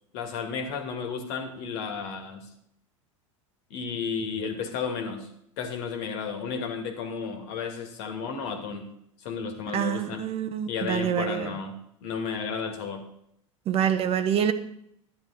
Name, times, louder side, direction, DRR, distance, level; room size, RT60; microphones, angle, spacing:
voice 1, 0.1-2.5 3.7-5.3 5.6-8.9 9.2-10.2 10.7-11.7 12.0-13.0, left 5 dB, 55° left, 5 dB, 2.1 m, -33 dB
voice 2, 9.7-11.6 13.7-14.5, right 9 dB, 35° right, 10 dB, 0.9 m, -26 dB
12.0 x 10.5 x 4.1 m, 0.73 s
figure-of-eight pair, 85°, 17 cm